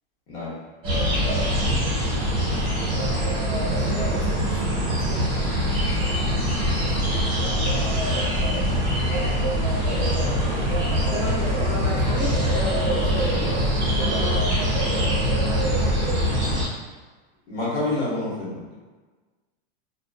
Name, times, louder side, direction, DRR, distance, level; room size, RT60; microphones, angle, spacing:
voice 1, 0.3-0.6 17.5-18.7, left 2 dB, 75° left, -7 dB, 1.1 m, -28 dB
sound 1, 0.8-16.6, equal, 15° right, 0.8 m, -23 dB
voice 2, 3.6-5.9 6.7-8.8 11.1-13.5 14.0-14.5 15.7-15.8, equal, 25° left, -10 dB, 0.8 m, -36 dB
2.4 x 2.2 x 2.2 m, 1.3 s
supercardioid pair, 170°, 29 cm